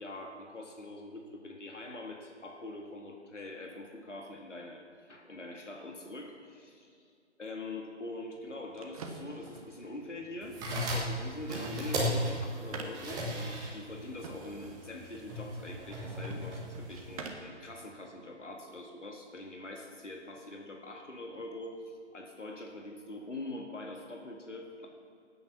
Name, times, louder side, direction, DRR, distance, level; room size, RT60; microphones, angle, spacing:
voice 1, 0.0-7.0 7.4-24.9, left 2 dB, 85° left, 1 dB, 2.2 m, -44 dB
sound 1, 8.4-17.6, right 4 dB, 30° right, 1.4 m, -48 dB
sound 2, 10.4-17.3, equal, 10° right, 1.6 m, -36 dB
18.0 x 9.5 x 6.0 m, 2.4 s
figure-of-eight pair, 145°, 36 cm